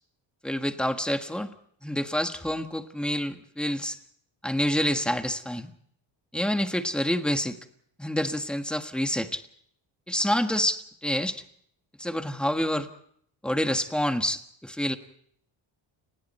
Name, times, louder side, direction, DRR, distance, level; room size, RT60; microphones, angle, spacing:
voice 1, 0.4-1.5 1.8-4.0 4.4-5.7 6.3-7.6 8.0-9.4 10.1-11.4 12.0-12.9 13.4-15.0, equal, ahead, 7 dB, 1.5 m, -27 dB
30.0 x 20.5 x 4.3 m, 0.66 s
cardioid pair, 145°, 44 cm